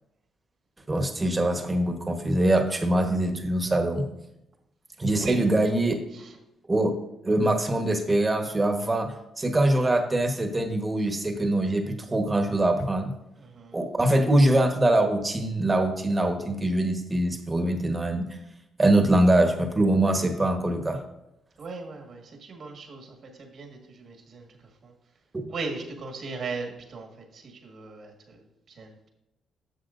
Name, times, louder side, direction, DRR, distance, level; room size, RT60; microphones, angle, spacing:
voice 1, 0.9-4.0 5.0-5.9 6.7-6.9 7.2-13.1 13.7-18.3 18.8-21.0 25.3-25.5, right 1 dB, 20° right, 5 dB, 1.2 m, -23 dB
voice 2, 5.2-5.7 6.1-6.3 13.4-13.8 21.6-24.5 24.8-24.9 25.5-28.4 28.7-29.1, right 3 dB, 55° right, 2 dB, 1.6 m, -38 dB
10.5 x 7.1 x 2.6 m, 0.86 s
cardioid pair, 90°, 0 cm